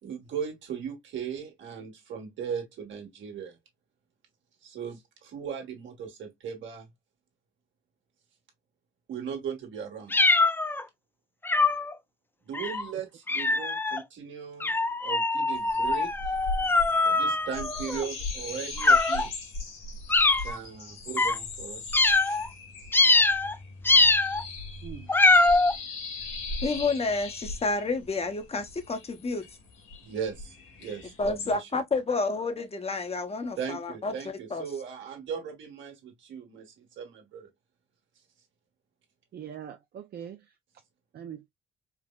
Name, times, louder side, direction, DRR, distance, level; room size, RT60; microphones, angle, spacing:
voice 1, 0.0-3.6 4.6-6.9 9.1-10.3 12.4-14.7 15.0-16.3 17.0-19.3 20.4-21.9 30.0-31.7 33.6-37.5, right 7 dB, 75° right, 1.4 m, -38 dB
sound 1, 10.1-10.8 11.4-11.9 12.5-12.8 13.3-14.0 14.6-18.1 18.8-19.3 20.1-20.6 21.2-21.4 21.9-22.5 22.9-23.5 23.8-24.4 25.1-25.7, left 3 dB, 10° left, 0.3 m, -23 dB
sound 2, 15.5-31.5, left 2 dB, 90° left, 1.6 m, -39 dB
voice 2, 24.8-25.1 39.3-40.4 41.1-41.5, right 9 dB, 55° right, 0.5 m, -42 dB
voice 3, 26.6-29.5 31.2-34.6, left 3 dB, 30° left, 0.8 m, -30 dB
4.6 x 2.0 x 2.2 m
cardioid pair, 90°, 20 cm